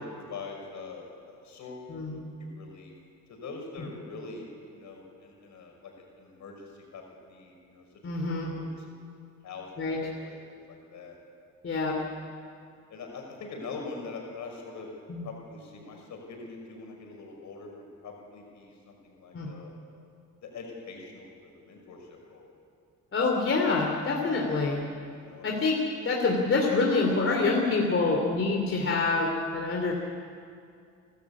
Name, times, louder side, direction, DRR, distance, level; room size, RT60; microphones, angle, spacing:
voice 1, 0.0-1.9 2.4-3.0 3.3-7.9 8.2-8.7 9.4-10.4 10.7-11.2 11.9-12.2 12.9-14.9 15.2-19.7 20.4-22.5 25.1-25.5, left 4 dB, 70° left, 1 dB, 5.9 m, -43 dB
voice 2, 1.9-2.2 8.0-8.5 9.8-10.0 11.6-12.0 15.1-15.3 19.3-19.5 23.1-24.8 25.4-25.8 26.0-29.9, left 3 dB, 45° left, 0 dB, 3.2 m, -26 dB
30.0 x 13.0 x 8.6 m, 2.3 s
cardioid pair, 90°, 30 cm